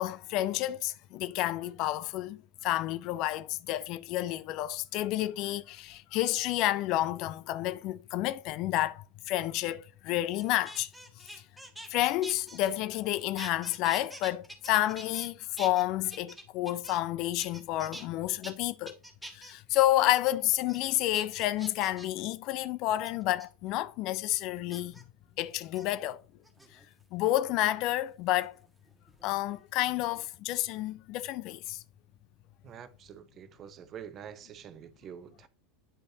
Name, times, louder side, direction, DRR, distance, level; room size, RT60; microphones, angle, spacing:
voice 1, 0.0-10.9 11.9-19.0 19.3-25.0 25.4-26.2 27.1-28.6 29.2-31.8, left 15 dB, 50° left, 0.4 m, -30 dB
sound 1, 10.3-13.1 13.4-15.3 15.6-17.1 17.4-18.1 18.4-18.5 18.9-19.5 20.0-20.3 20.7-20.8 21.1-22.2 23.1-23.5 24.7-25.0 25.6-25.9 26.4-27.0 28.4-29.6 29.9-30.3, right 1 dB, 5° right, 1.4 m, -46 dB
voice 2, 32.6-35.5, right 8 dB, 35° right, 0.7 m, -46 dB
9.7 x 5.2 x 2.8 m
figure-of-eight pair, 80°, 0 cm